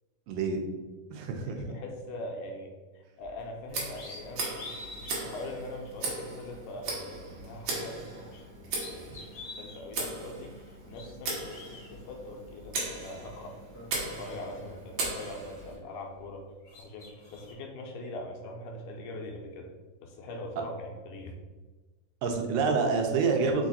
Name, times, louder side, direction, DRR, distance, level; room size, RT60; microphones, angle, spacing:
voice 1, 0.3-0.7 1.1-1.7 22.2-23.7, right 4 dB, 90° right, 3 dB, 2.4 m, -27 dB
voice 2, 1.4-13.6 14.2-16.4 16.8-19.7 20.0-21.3, left 1 dB, 80° left, 1 dB, 2.0 m, -42 dB
sound 1, 3.2-3.4 3.9-5.2 5.9-6.0 7.7-8.4 8.7-9.8 10.7-11.9 13.0-13.1 13.5-15.2 15.5-16.4 16.6-17.5, left 2 dB, 65° left, 1.1 m, -47 dB
Tick, 3.7-15.8, right 3 dB, 65° right, 2.1 m, -38 dB
5.4 x 2.4 x 4.0 m, 1.3 s
omnidirectional pair, 3.8 m